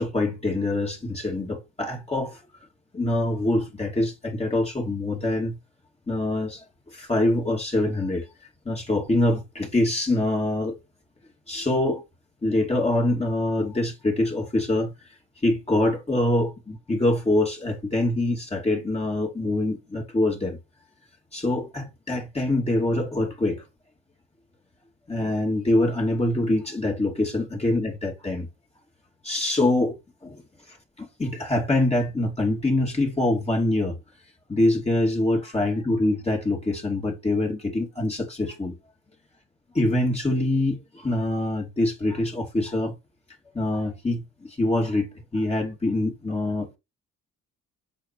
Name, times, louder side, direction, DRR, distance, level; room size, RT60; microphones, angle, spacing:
voice 1, 0.0-2.4 2.9-5.6 6.1-8.2 8.7-10.8 11.5-12.0 12.4-14.9 15.4-20.6 21.3-23.6 25.1-28.5 29.2-30.0 30.2-30.4 30.7-34.0 34.5-38.7 39.7-42.9 43.5-45.1 45.3-46.8, left 1 dB, 20° left, 2.4 m, -24 dB
8.4 x 5.9 x 3.1 m
cardioid pair, 90°, 30 cm